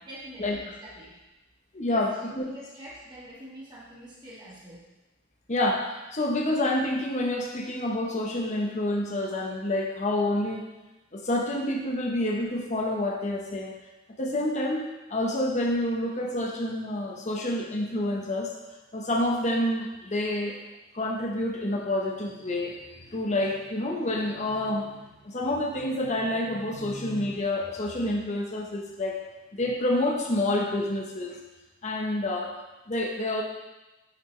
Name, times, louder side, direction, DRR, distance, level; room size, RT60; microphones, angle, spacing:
voice 1, 0.1-1.2 1.9-2.0 2.4-4.8, right 1 dB, 20° right, -7 dB, 1.7 m, -45 dB
voice 2, 1.7-2.4 5.5-10.6 11.1-13.7 14.2-14.8 15.1-18.5 18.9-20.6 20.9-29.2 29.5-31.4 31.8-32.5 32.9-33.4, left 1 dB, 35° left, 0 dB, 0.9 m, -28 dB
9.1 x 5.0 x 3.2 m, 1.0 s
head